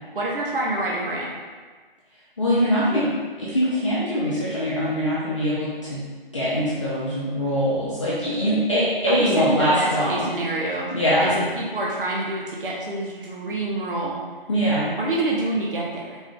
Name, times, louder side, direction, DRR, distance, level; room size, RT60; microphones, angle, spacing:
voice 1, 0.1-1.3 9.1-10.9 11.2-14.2 15.0-16.2, right 2 dB, 65° right, -3 dB, 0.8 m, -27 dB
voice 2, 2.4-3.1 3.4-6.0 6.3-10.3 10.9-11.4 14.5-14.9, equal, 30° left, -9 dB, 0.6 m, -22 dB
4.3 x 2.4 x 3.5 m, 1.4 s
figure-of-eight pair, 155°, 29 cm